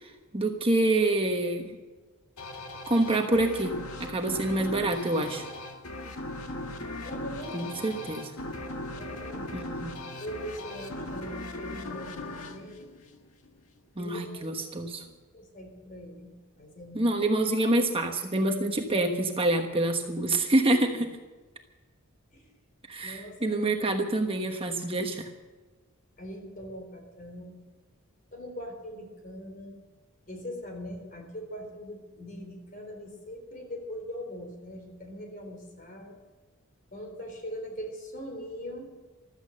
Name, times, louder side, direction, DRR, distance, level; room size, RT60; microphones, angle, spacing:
voice 1, 0.0-1.6 2.9-3.7 4.0-5.4 7.5-8.3 9.5-9.9 14.0-15.0 16.9-21.1 22.9-25.3, right 2 dB, 25° right, 4 dB, 1.2 m, -27 dB
sound 1, 2.4-13.6, left 2 dB, 90° left, 1.8 m, -39 dB
voice 2, 7.0-8.0 9.0-9.5 10.2-12.9 14.0-15.1 15.3-17.4 22.3-22.5 23.0-23.9 26.2-27.6 28.3-29.7 30.3-36.2 36.9-38.9, equal, 40° left, 4 dB, 3.8 m, -41 dB
15.5 x 13.5 x 6.5 m, 1.2 s
head